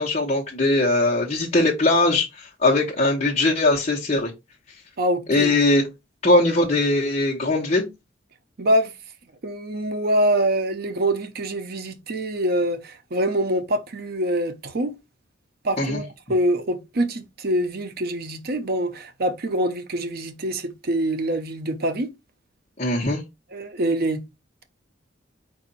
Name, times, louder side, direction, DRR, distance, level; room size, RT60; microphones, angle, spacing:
voice 1, 0.0-4.3 5.3-5.8 6.2-7.9 15.8-16.0 22.8-23.2, left 2 dB, 35° left, 1.2 m, -20 dB
voice 2, 5.0-5.6 8.6-8.9 9.4-14.9 15.6-22.1 23.5-24.2, right 1 dB, 55° right, 0.7 m, -25 dB
4.9 x 2.6 x 4.0 m
head